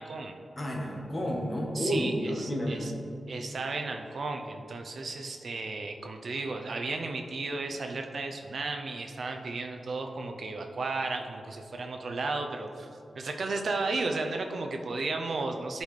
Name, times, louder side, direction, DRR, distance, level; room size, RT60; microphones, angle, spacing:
voice 1, 0.0-0.4 1.7-2.9 3.3-12.9 13.1-15.8, right 3 dB, 60° right, 4 dB, 0.5 m, -34 dB
voice 2, 0.6-2.9, equal, 25° left, -2 dB, 1.2 m, -31 dB
11.5 x 4.0 x 3.2 m, 2.6 s
wide cardioid pair, 150°, 0 cm